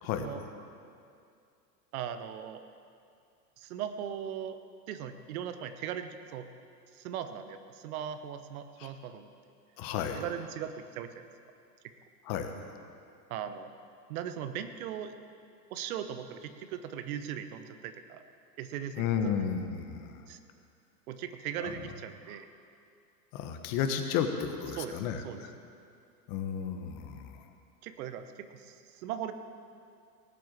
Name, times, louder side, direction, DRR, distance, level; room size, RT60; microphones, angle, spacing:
voice 1, 0.0-0.4 1.9-2.6 3.6-4.6 4.9-6.5 6.9-9.3 10.1-11.3 13.3-13.7 14.1-15.1 15.7-18.2 18.6-19.5 20.3-20.4 21.1-22.5 24.7-25.0 25.2-25.4 27.8-29.3, right 9 dB, 55° right, 9 dB, 1.1 m, -39 dB
voice 2, 9.8-10.2 12.3-12.5 19.0-20.2 21.6-21.7 23.3-25.5 26.3-27.4, left 7 dB, 45° left, 6 dB, 1.5 m, -33 dB
18.5 x 7.7 x 7.4 m, 2.4 s
hypercardioid pair, 100°, 50 cm